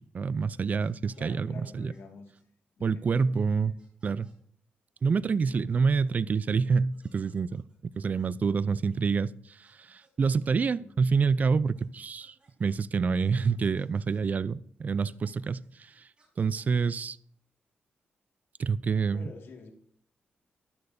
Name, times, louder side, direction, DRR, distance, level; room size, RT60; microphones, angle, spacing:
voice 1, 0.0-1.5 1.7-1.9 2.8-3.7 4.0-4.3 5.0-7.6 8.0-12.3 12.6-16.1 16.4-17.2 18.6-19.2, right 5 dB, 45° right, 0.4 m, -27 dB
sound 1, 0.8-1.2 1.9-2.0 2.3-2.4 3.1-3.2 3.8-4.3 5.0-5.1 5.3-6.2 6.9-9.0 9.6-9.7 10.0-10.7 11.7-12.7 13.2-14.2 15.0-15.7 16.2-17.0, right 2 dB, 30° right, 5.5 m, -68 dB
voice 2, 1.2-2.3 2.8-3.8 10.8-11.0 19.1-19.7, left 4 dB, 80° left, 2.0 m, -49 dB
14.5 x 11.5 x 2.7 m
cardioid pair, 95°, 4 cm